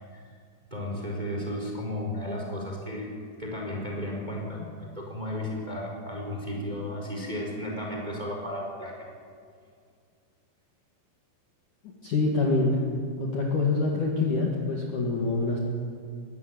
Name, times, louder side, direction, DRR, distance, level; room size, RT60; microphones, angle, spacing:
voice 1, 0.7-3.1 3.4-9.1, left 1 dB, 10° right, -1 dB, 4.0 m, -34 dB
voice 2, 12.0-12.8 13.2-15.6, left 3 dB, 50° left, -2 dB, 3.0 m, -25 dB
22.0 x 17.0 x 9.5 m, 2.2 s
omnidirectional pair, 5.8 m